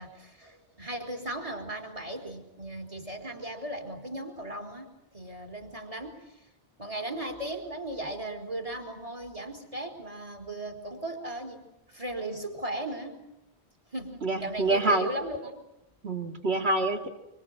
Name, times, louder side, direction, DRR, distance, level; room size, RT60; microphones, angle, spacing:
voice 1, 0.0-4.9 5.1-6.2 6.8-11.6 11.9-13.2 13.9-15.6, right 1 dB, 35° right, 3 dB, 4.2 m, -37 dB
voice 2, 14.2-15.1 16.0-17.1, right 2 dB, 75° right, 5 dB, 2.7 m, -26 dB
26.0 x 25.0 x 8.1 m, 0.90 s
omnidirectional pair, 1.1 m